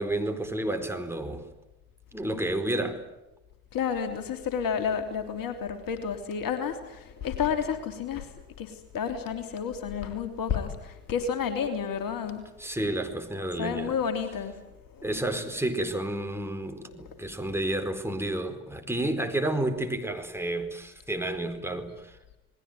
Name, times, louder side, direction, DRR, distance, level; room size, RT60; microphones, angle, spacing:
voice 1, 0.0-1.5 2.1-3.0 12.6-13.9 15.0-22.1, right 1 dB, 5° right, 5 dB, 4.5 m, -30 dB
voice 2, 3.7-8.3 8.6-12.4 13.6-14.5 14.9-15.1, left 7 dB, 55° left, 7 dB, 3.2 m, -30 dB
29.0 x 20.0 x 9.4 m, 1.0 s
figure-of-eight pair, 45°, 40 cm